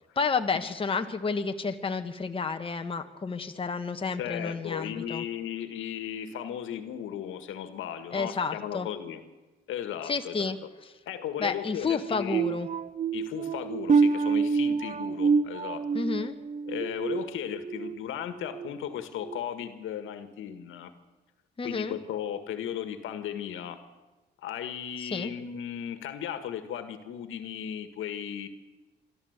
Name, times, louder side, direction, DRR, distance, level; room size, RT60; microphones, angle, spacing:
voice 1, 0.1-5.2 8.1-8.9 10.0-10.9 11.4-12.7 15.9-16.3 21.6-22.0 25.0-25.3, left 4 dB, 25° left, 6 dB, 1.4 m, -31 dB
voice 2, 4.2-9.2 9.7-10.5 11.1-12.5 13.1-15.8 16.7-20.9 21.6-23.8 24.4-28.5, left 9 dB, 85° left, 9 dB, 1.7 m, -36 dB
sound 1, 12.3-18.0 18.4-18.7 19.2-19.4, right 5 dB, 35° right, 0.6 m, -27 dB
25.5 x 12.5 x 8.1 m, 1.2 s
cardioid pair, 90°, 20 cm